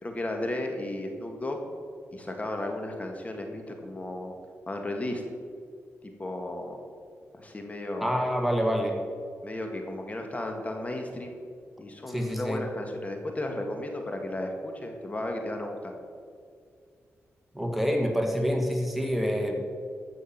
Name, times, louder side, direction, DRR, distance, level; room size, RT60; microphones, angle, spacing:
voice 1, 0.0-1.6 2.1-4.4 4.7-5.2 6.0-6.8 7.3-8.2 9.4-11.4 11.8-15.9, left 1 dB, 30° left, 3 dB, 1.8 m, -34 dB
voice 2, 8.0-9.0 12.1-12.6 17.5-19.6, equal, ahead, 1 dB, 1.7 m, -27 dB
15.0 x 6.4 x 7.4 m, 2.2 s
cardioid pair, 80°, 5 cm